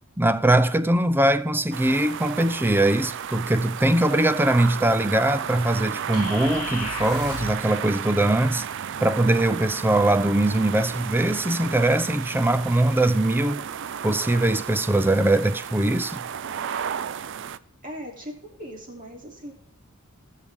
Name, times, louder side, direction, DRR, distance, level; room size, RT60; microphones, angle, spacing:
voice 1, 0.2-8.7 9.0-13.6 14.0-16.2, right 1 dB, 10° right, 0.5 m, -21 dB
sound 1, 1.7-17.6, right 8 dB, 60° right, 0.5 m, -33 dB
sound 2, 6.1-7.7, left 11 dB, 85° left, 0.5 m, -36 dB
voice 2, 17.8-19.5, equal, 40° right, 2.9 m, -39 dB
19.5 x 6.6 x 3.5 m
head